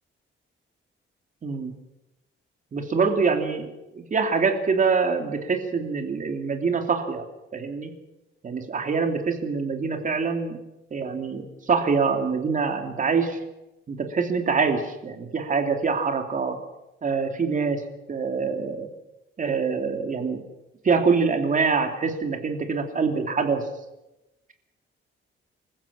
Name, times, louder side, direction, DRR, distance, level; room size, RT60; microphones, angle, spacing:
voice 1, 1.4-1.7 2.7-7.2 7.5-7.9 8.4-10.6 10.9-13.4 13.9-16.6 17.0-17.8 18.1-18.9 19.4-20.4 20.8-23.6, right 5 dB, 40° right, 5 dB, 3.0 m, -25 dB
26.0 x 15.0 x 7.3 m, 0.97 s
cardioid pair, 145°, 21 cm